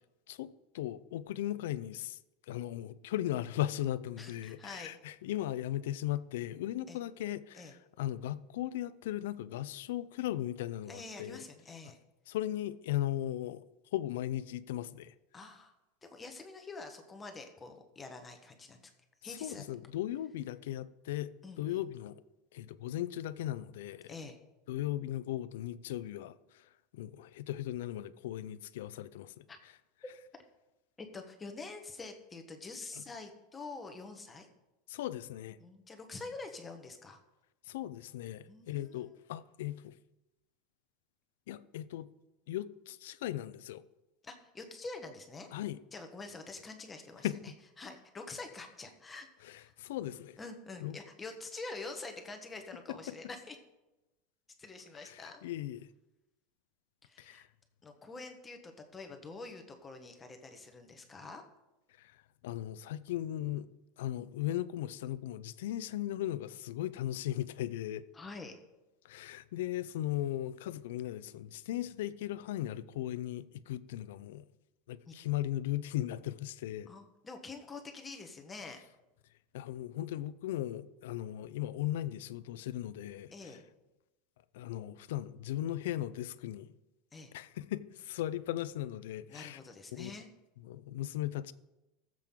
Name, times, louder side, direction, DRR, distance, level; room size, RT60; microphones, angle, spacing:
voice 1, 0.3-2.2 2.5-11.4 12.3-13.6 13.9-15.1 19.4-22.2 22.5-24.1 24.7-29.4 33.0-33.1 34.9-35.6 37.6-40.0 41.5-42.1 42.5-43.8 45.5-45.8 47.2-47.4 49.4-50.4 50.8-51.0 52.9-53.2 55.0-55.9 57.2-57.5 62.0-63.7 64.0-68.1 69.0-74.4 74.9-76.9 79.5-83.6 84.5-86.7 87.3-89.6 89.9-90.1 90.6-91.5, left 13 dB, 85° left, 0.5 m, -37 dB
voice 2, 4.2-4.9 6.9-7.0 7.5-7.7 10.9-12.0 15.3-15.7 16.0-18.9 19.2-19.6 21.4-21.8 24.1-24.4 29.5-29.6 31.0-34.5 35.6-37.2 38.5-39.1 44.2-45.5 45.9-47.3 47.8-49.7 50.4-53.6 54.6-55.4 57.0-57.4 57.8-61.4 68.1-68.5 75.1-75.2 76.9-78.8 83.3-83.6 87.1-87.3 89.3-90.3, left 3 dB, 15° left, 1.2 m, -46 dB
19.5 x 7.6 x 3.8 m
supercardioid pair, 165°, 0 cm